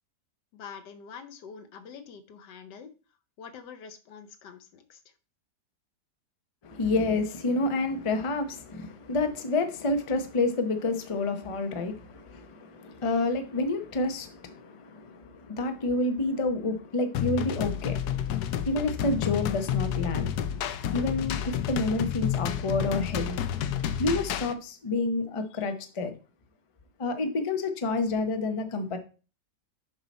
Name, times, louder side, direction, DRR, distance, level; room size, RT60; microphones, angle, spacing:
voice 1, 0.5-2.9 3.4-5.0, left 6 dB, 90° left, 10 dB, 1.5 m, -45 dB
voice 2, 6.6-18.2 18.6-20.3 20.9-23.4 24.0-26.1 27.0-29.0, left 2 dB, 30° left, 7 dB, 0.6 m, -29 dB
sound 1, 17.1-24.5, left 9 dB, 75° left, 1.1 m, -30 dB
6.6 x 5.7 x 4.1 m, 0.34 s
omnidirectional pair, 1.8 m